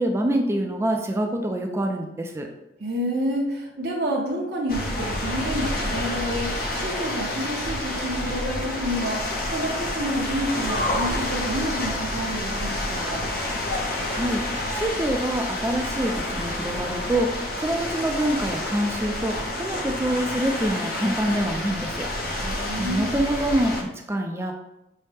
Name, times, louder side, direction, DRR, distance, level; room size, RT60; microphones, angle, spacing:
voice 1, 0.0-2.5 14.1-24.6, right 1 dB, 15° right, 3 dB, 0.3 m, -26 dB
voice 2, 2.8-13.3 22.4-23.1, equal, 60° right, -3 dB, 0.6 m, -29 dB
sound 1, 4.7-23.8, left 1 dB, 50° left, 0.6 m, -29 dB
5.5 x 2.1 x 3.2 m, 0.92 s
head